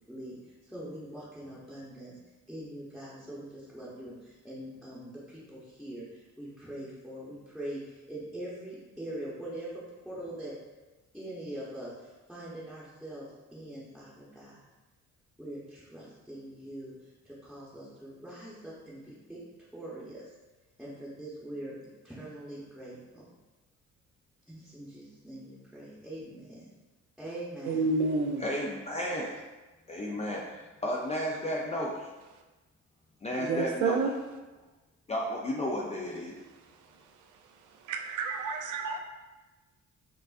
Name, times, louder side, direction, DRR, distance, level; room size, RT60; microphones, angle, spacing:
voice 1, 0.6-2.1 2.5-10.6 11.1-14.6 15.4-16.9 17.2-19.4 19.7-20.2 20.8-21.8 22.0-23.3 24.5-26.7 27.2-27.9, right 1 dB, ahead, -7 dB, 0.8 m, -43 dB
voice 2, 27.7-28.4 33.4-34.1 37.9-39.0, right 4 dB, 80° right, 4 dB, 0.5 m, -29 dB
voice 3, 28.4-29.3 29.9-32.1 33.2-34.0 35.1-36.3, equal, 25° left, -2 dB, 0.4 m, -33 dB
4.6 x 2.4 x 2.4 m, 1.1 s
cardioid pair, 90°, 30 cm